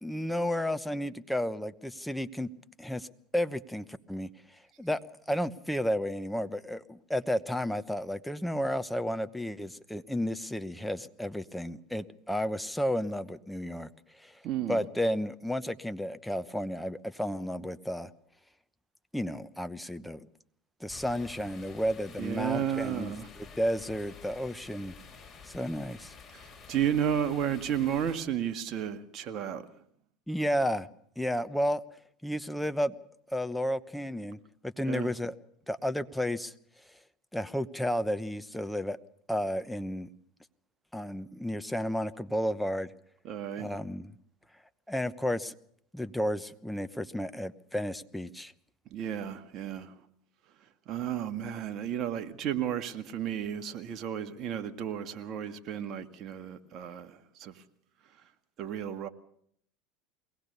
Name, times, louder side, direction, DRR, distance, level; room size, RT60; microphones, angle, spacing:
voice 1, 0.0-2.5 2.8-3.1 3.3-4.3 4.8-5.0 5.3-13.9 14.2-14.3 14.7-18.1 19.1-20.2 20.8-23.1 23.6-25.0 25.4-26.1 30.3-30.9 31.2-31.8 32.2-32.9 33.3-35.3 35.7-36.5 37.3-39.0 39.3-40.1 40.9-42.9 43.6-44.1 44.9-45.5 45.9-48.5, equal, 5° left, 1.0 m, -32 dB
voice 2, 14.4-14.8 22.2-23.3 26.3-29.6 34.9-35.1 43.2-43.7 48.9-49.9 50.9-57.5 58.6-59.1, right 9 dB, 50° right, 1.9 m, -33 dB
sound 1, 20.9-28.2, left 5 dB, 20° left, 6.4 m, -50 dB
23.0 x 18.5 x 6.8 m
hypercardioid pair, 90°, 0 cm